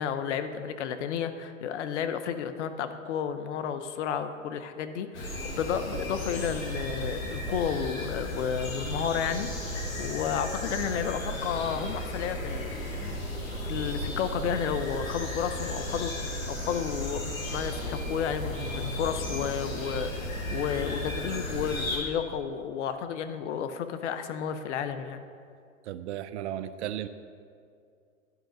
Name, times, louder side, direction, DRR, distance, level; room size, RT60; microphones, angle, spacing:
voice 1, 0.0-13.1 13.5-25.2, left 8 dB, 60° left, 10 dB, 0.7 m, -32 dB
sound 1, 5.1-22.0, left 1 dB, 80° left, 1.7 m, -34 dB
voice 2, 25.8-27.1, right 11 dB, 60° right, 13 dB, 0.5 m, -35 dB
11.0 x 3.8 x 5.0 m, 2.3 s
hypercardioid pair, 115°, 40 cm